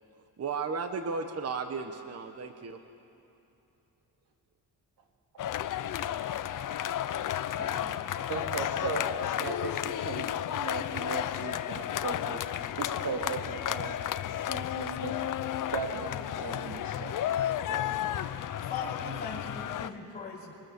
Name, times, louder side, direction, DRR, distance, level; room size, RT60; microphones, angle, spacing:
voice 1, 0.4-2.8, right 5 dB, 45° right, 7 dB, 1.2 m, -34 dB
sound 1, 5.4-19.9, left 11 dB, 60° left, 0.7 m, -33 dB
voice 2, 7.6-8.0 8.3-9.0 9.4-12.4 12.8-14.0 14.5-16.1 16.4-17.2 17.7-17.9, right 4 dB, 70° right, 2 dB, 2.8 m, -37 dB
voice 3, 17.8-18.3 18.6-20.5, left 5 dB, 20° left, -9 dB, 5.7 m, -40 dB
26.0 x 24.0 x 6.7 m, 2.8 s
wide cardioid pair, 165°, 36 cm